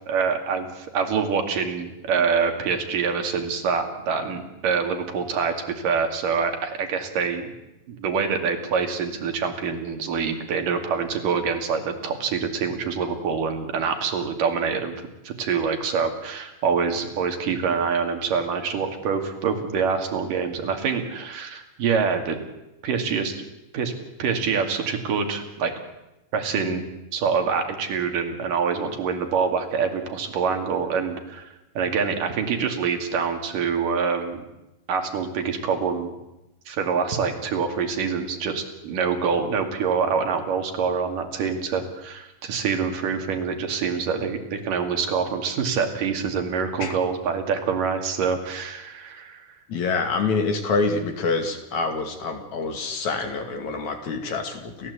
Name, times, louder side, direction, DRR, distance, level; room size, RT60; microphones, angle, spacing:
voice 1, 0.1-7.5 7.9-14.9 15.2-22.4 22.8-23.4 23.7-23.9 24.2-25.7 26.3-26.8 27.1-34.4 34.9-36.1 36.7-49.5, right 6 dB, 85° right, 5 dB, 4.1 m, -25 dB
voice 2, 49.7-54.9, left 4 dB, 60° left, 5 dB, 3.8 m, -26 dB
29.0 x 15.0 x 8.3 m, 0.95 s
omnidirectional pair, 3.7 m